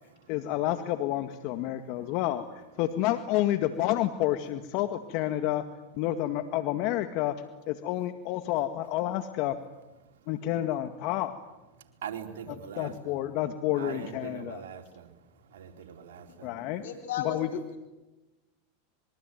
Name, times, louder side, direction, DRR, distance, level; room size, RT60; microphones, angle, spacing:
voice 1, 0.3-2.4 2.8-5.6 6.0-7.4 7.7-9.5 10.3-11.4 12.8-14.6 16.4-16.8 17.2-17.5, left 13 dB, 55° left, 1.9 m, -29 dB
voice 2, 12.0-13.2 13.7-15.1 15.5-16.5, right 8 dB, 75° right, 4.1 m, -41 dB
voice 3, 16.8-17.8, left 9 dB, 80° left, 4.5 m, -35 dB
26.5 x 23.0 x 9.3 m
hypercardioid pair, 110°, 0 cm